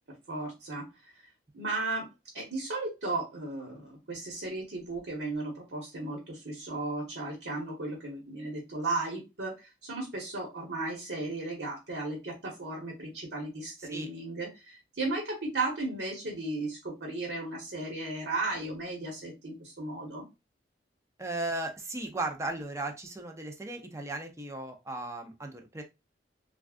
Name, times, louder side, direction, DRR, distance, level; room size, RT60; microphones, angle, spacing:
voice 1, 0.3-0.9 1.5-2.1 2.3-20.2, right 2 dB, 75° right, -1 dB, 1.1 m, -35 dB
voice 2, 13.8-14.1 21.2-25.8, right 2 dB, 15° right, 4 dB, 0.5 m, -36 dB
3.5 x 2.3 x 2.4 m, 0.25 s
head